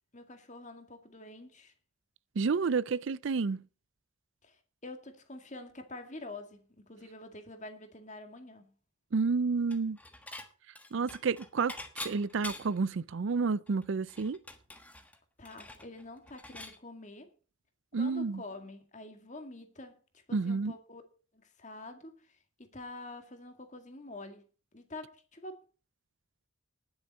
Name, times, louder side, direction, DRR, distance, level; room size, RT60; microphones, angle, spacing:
voice 1, 0.1-1.7 4.4-8.7 15.4-17.3 17.9-21.0 21.3-24.4 24.7-25.6, left 2 dB, 35° left, 2.0 m, -47 dB
voice 2, 2.4-3.6 9.1-10.0 10.9-11.8 12.0-14.4 17.9-18.4 20.3-20.7, right 4 dB, 65° right, 0.5 m, -30 dB
Dishes pots and pans / Chink clink, 9.7-10.5 10.8-12.9 13.3-13.4 13.7-16.8, left 2 dB, 5° left, 1.3 m, -45 dB
20.0 x 7.0 x 4.2 m
head